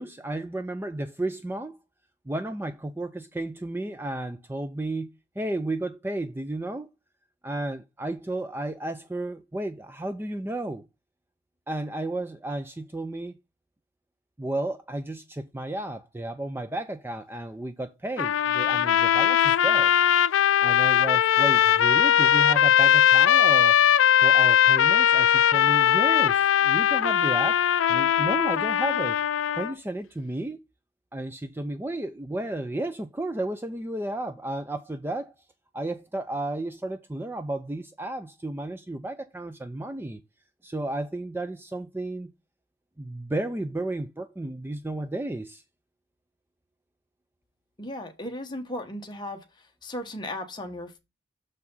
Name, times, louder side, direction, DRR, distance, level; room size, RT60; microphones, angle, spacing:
voice 1, 0.0-1.8 2.3-5.1 5.4-6.9 7.4-10.9 11.7-13.4 14.4-19.9 20.6-23.8 24.2-27.6 27.9-29.2 29.5-30.6 31.1-35.3 35.7-40.2 40.6-42.3 43.0-45.6, right 1 dB, 10° right, 0.4 m, -33 dB
sound 1, 18.2-29.7, left 10 dB, 80° left, 0.4 m, -20 dB
voice 2, 47.8-51.0, left 1 dB, 25° left, 1.2 m, -36 dB
6.7 x 4.8 x 5.4 m
head